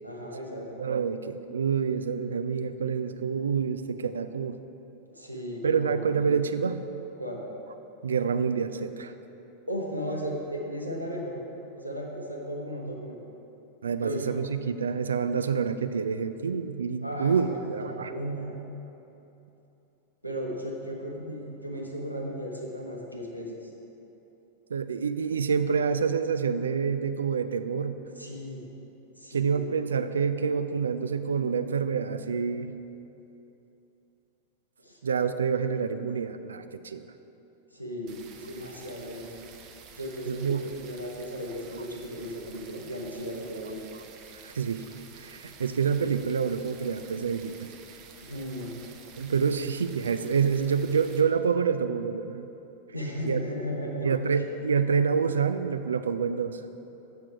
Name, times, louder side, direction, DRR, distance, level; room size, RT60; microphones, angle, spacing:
voice 1, 0.0-0.8 5.1-6.4 7.2-7.4 9.7-11.4 11.8-13.2 14.0-14.3 17.0-18.5 20.2-23.6 28.2-28.6 29.2-29.6 34.8-35.0 37.7-39.4 40.0-43.8 48.2-48.7 52.9-54.2, equal, 90° right, -1 dB, 1.0 m, -35 dB
voice 2, 0.8-4.6 5.6-6.8 8.0-9.1 13.8-18.1 24.7-28.0 29.3-32.8 35.0-37.0 40.3-40.6 44.4-44.9 45.2-47.7 49.2-52.5 53.2-53.4 54.0-56.6, right 6 dB, 70° right, 11 dB, 0.3 m, -27 dB
sound 1, 38.1-51.2, right 6 dB, 40° right, 0.7 m, -50 dB
7.3 x 6.1 x 4.6 m, 3.0 s
figure-of-eight pair, 90°, 0 cm